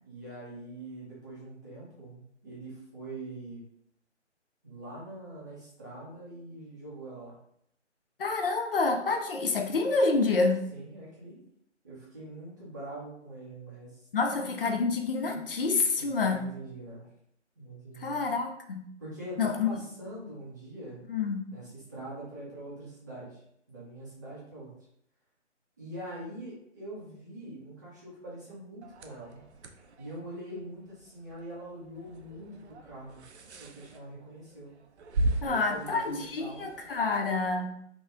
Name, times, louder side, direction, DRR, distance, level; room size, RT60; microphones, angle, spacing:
voice 1, 0.0-3.6 4.6-7.4 10.7-11.5 11.8-14.1 16.0-17.1 17.6-18.3 19.0-21.0 21.5-24.7 25.8-29.4 30.0-33.2 33.6-34.7 35.4-36.7, right 1 dB, 15° right, -7 dB, 0.5 m, -43 dB
voice 2, 8.2-10.6 14.1-16.4 18.0-18.8 19.4-19.7 21.1-21.4 35.4-37.7, left 4 dB, 50° left, 4 dB, 0.5 m, -28 dB
sound 1, 28.8-37.1, right 2 dB, 65° right, 0.5 m, -38 dB
2.9 x 2.1 x 3.4 m, 0.73 s
figure-of-eight pair, 150°, 36 cm